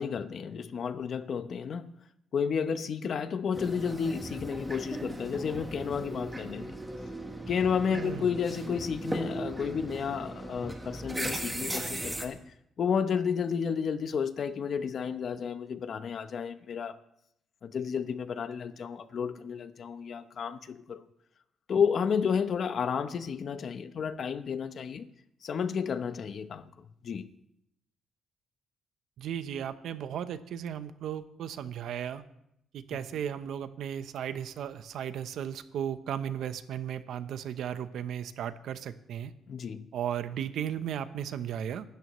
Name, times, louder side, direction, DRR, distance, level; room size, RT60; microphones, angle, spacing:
voice 1, 0.0-1.9 2.3-6.7 7.5-12.4 12.8-16.9 17.6-21.0 21.7-25.1 25.4-26.6 27.0-27.3 39.5-39.8, left 6 dB, 45° left, 0.8 m, -31 dB
sound 1, 3.5-12.3, right 1 dB, 10° right, 1.3 m, -38 dB
voice 2, 7.9-8.3 29.2-32.2 32.7-39.3 39.9-41.8, right 9 dB, 75° right, 0.8 m, -35 dB
25.0 x 12.5 x 3.1 m
cardioid pair, 145°, 0 cm